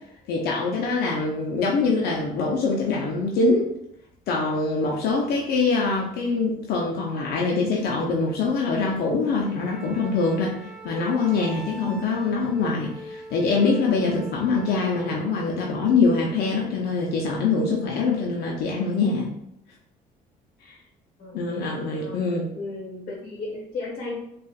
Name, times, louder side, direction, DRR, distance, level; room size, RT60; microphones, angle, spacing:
voice 1, 0.3-3.7 4.3-10.6 10.8-19.3 20.6-20.8 21.3-22.5, left 4 dB, 70° left, -2 dB, 0.6 m, -24 dB
Wind instrument woodwind instrument, 9.4-15.2, right 2 dB, ahead, 0.6 m, -42 dB
voice 2, 21.2-21.6 22.0-22.3 22.6-24.1, left 3 dB, 55° left, -4 dB, 1.0 m, -35 dB
3.8 x 2.4 x 2.4 m, 0.78 s
cardioid pair, 110°, 17 cm